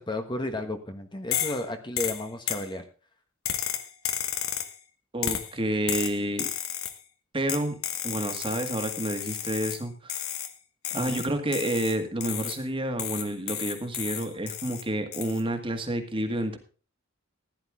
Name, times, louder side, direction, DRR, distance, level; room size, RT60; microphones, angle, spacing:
voice 1, 0.0-2.8 10.9-11.2, left 1 dB, 20° left, 6 dB, 1.2 m, -33 dB
sound 1, 1.3-1.6 2.0-2.7 3.4-4.8 5.2-5.5 5.9-7.0 7.5-9.8 10.1-10.5 10.8-12.6 13.0-14.8 15.1-15.4, left 10 dB, 85° left, 1.5 m, -32 dB
voice 2, 5.1-6.5 7.3-7.8 8.0-10.3 10.9-16.6, right 1 dB, 25° right, 5 dB, 1.9 m, -29 dB
15.5 x 10.5 x 3.7 m, 0.38 s
head